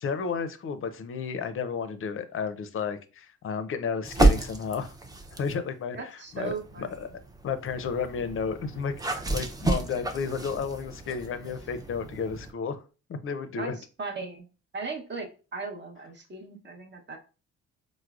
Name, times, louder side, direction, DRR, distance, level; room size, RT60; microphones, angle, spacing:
voice 1, 0.0-4.9 5.4-6.0 6.3-7.1 7.4-12.8 13.1-13.8, left 5 dB, 45° left, 10 dB, 0.5 m, -32 dB
sound 1, 4.0-5.6 6.3-12.5, right 2 dB, 15° right, 0.5 m, -30 dB
voice 2, 5.9-6.9 13.6-13.7 14.0-14.5 14.7-17.2, right 4 dB, 35° right, 3 dB, 0.8 m, -37 dB
4.6 x 2.1 x 2.3 m, 0.34 s
cardioid pair, 90°, 30 cm